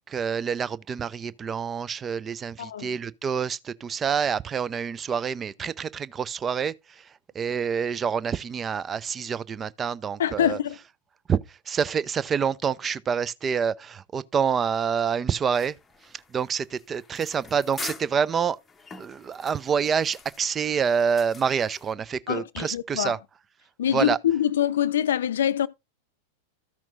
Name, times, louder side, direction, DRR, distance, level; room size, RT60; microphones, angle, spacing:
voice 1, 0.1-10.6 11.3-15.8 16.0-18.6 19.0-23.2 23.9-24.2, right 7 dB, 20° right, 0.4 m, -27 dB
voice 2, 2.6-2.9 10.2-10.8 22.3-23.2 23.8-25.7, left 10 dB, 60° left, 0.5 m, -24 dB
sound 1, 15.5-21.9, left 4 dB, 15° left, 0.8 m, -44 dB
14.0 x 5.9 x 2.6 m
figure-of-eight pair, 90°, 0 cm